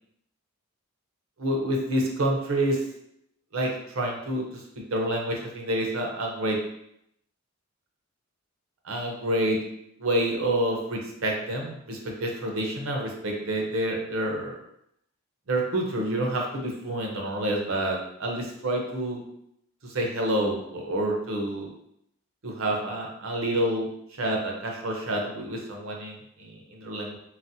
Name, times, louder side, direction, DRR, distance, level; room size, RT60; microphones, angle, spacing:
voice 1, 1.4-2.8 3.5-4.4 4.8-6.6 8.8-9.6 10.0-14.5 15.5-19.2 19.8-21.7 22.4-23.9 24.2-27.2, right 1 dB, 65° right, 0 dB, 0.7 m, -28 dB
4.0 x 2.0 x 2.6 m, 0.76 s
head